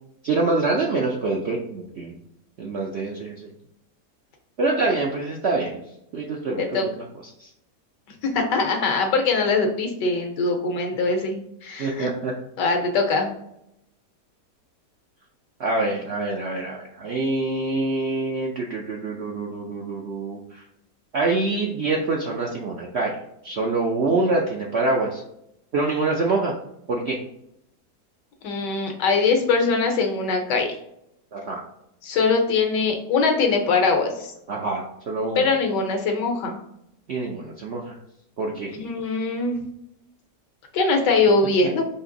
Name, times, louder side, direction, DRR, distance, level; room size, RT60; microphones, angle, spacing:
voice 1, 0.2-2.1 2.6-3.5 4.6-5.8 6.1-6.9 7.4-7.5 11.8-12.3 15.6-20.4 21.1-23.1 23.4-25.2 25.7-26.5 26.9-27.2 31.3-31.6 34.5-35.5 37.1-38.0 38.4-38.7, right 3 dB, 65° right, -1 dB, 0.6 m, -25 dB
voice 2, 8.3-12.1 12.6-13.3 28.4-30.8 32.0-34.3 35.3-36.6 38.7-39.6 40.7-41.8, left 4 dB, 80° left, 3 dB, 1.5 m, -22 dB
4.2 x 3.0 x 3.7 m, 0.79 s
omnidirectional pair, 1.8 m